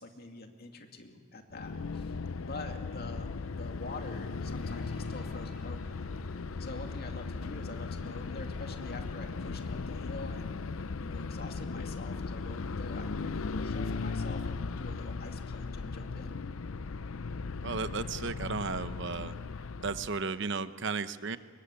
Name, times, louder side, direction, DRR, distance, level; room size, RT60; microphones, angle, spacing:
voice 1, 0.0-6.0 6.6-16.4, left 2 dB, 45° left, 4 dB, 2.4 m, -46 dB
sound 1, 1.5-20.3, left 4 dB, 75° left, 0.6 m, -37 dB
sound 2, 4.6-10.4, right 1 dB, 5° right, 5.1 m, -54 dB
voice 2, 17.6-19.3 19.8-21.4, right 4 dB, 55° right, 12 dB, 0.8 m, -34 dB
23.0 x 22.5 x 9.9 m, 2.2 s
head